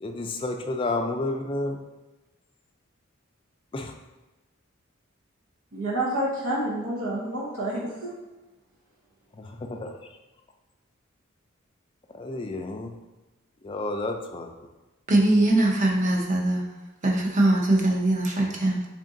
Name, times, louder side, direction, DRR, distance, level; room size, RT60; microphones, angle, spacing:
voice 1, 0.0-1.8 3.7-3.9 9.4-9.9 12.1-12.9 13.6-14.5, left 2 dB, 25° left, 3 dB, 0.3 m, -30 dB
voice 2, 5.7-8.1, right 1 dB, 90° right, -5 dB, 0.8 m, -28 dB
voice 3, 15.1-16.7 17.0-18.9, right 1 dB, 35° right, -1 dB, 0.6 m, -22 dB
3.7 x 2.5 x 3.7 m, 1.1 s
head